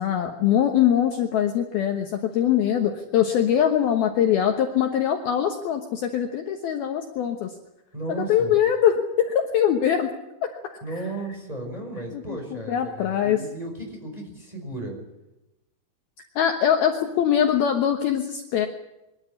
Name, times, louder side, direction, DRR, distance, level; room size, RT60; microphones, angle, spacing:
voice 1, 0.0-7.5 8.2-10.1 10.7-10.8 12.1-13.4 16.4-18.7, left 9 dB, 65° left, 4 dB, 2.7 m, -22 dB
voice 2, 7.9-8.6 10.8-15.0, right 2 dB, 10° right, 1 dB, 5.0 m, -34 dB
24.0 x 13.0 x 9.9 m, 0.94 s
omnidirectional pair, 5.3 m